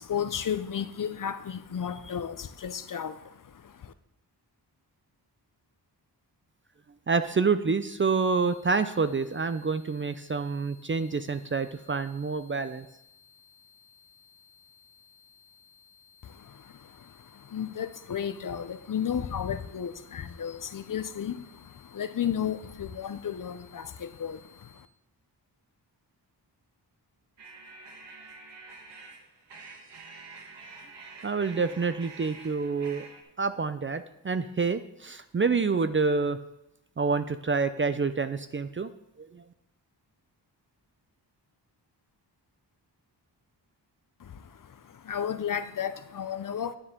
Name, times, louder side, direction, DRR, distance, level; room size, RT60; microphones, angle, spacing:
voice 1, 0.0-3.9 16.2-24.9 44.2-46.8, left 8 dB, 50° left, 12 dB, 0.6 m, -34 dB
voice 2, 7.1-12.9 31.2-33.0 33.4-36.4 37.0-38.9 39.2-39.4, right 4 dB, 30° right, 12 dB, 0.4 m, -27 dB
sound 1, 7.8-24.8, left 6 dB, ahead, 2.7 m, -59 dB
sound 2, 27.4-33.2, right 4 dB, 75° right, 1.4 m, -48 dB
9.6 x 9.6 x 3.7 m, 0.85 s
wide cardioid pair, 90°, 43 cm